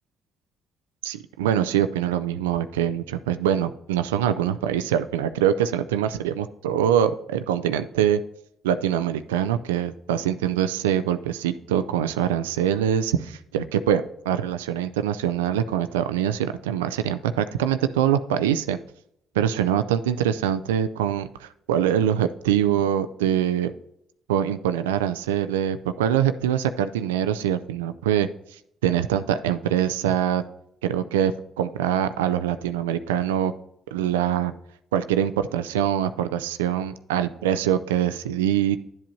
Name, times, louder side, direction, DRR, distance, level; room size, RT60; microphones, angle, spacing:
voice 1, 1.0-8.2 8.6-18.8 19.4-23.7 24.3-28.3 28.8-30.4 30.8-33.5 33.9-34.5 34.9-38.8, right 10 dB, 85° right, 11 dB, 0.3 m, -24 dB
11.5 x 7.6 x 2.7 m, 0.75 s
hypercardioid pair, 45°, 0 cm